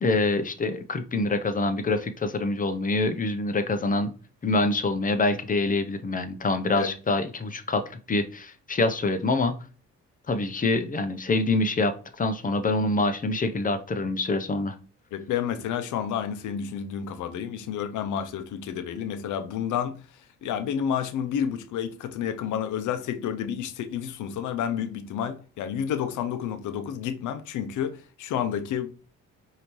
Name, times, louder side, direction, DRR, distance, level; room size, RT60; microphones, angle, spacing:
voice 1, 0.0-4.1 4.4-9.5 10.3-14.7, left 2 dB, 25° left, 0.6 m, -25 dB
voice 2, 15.1-20.0 20.4-28.9, left 8 dB, 80° left, 0.7 m, -30 dB
5.0 x 2.8 x 3.0 m
cardioid pair, 90°, 30 cm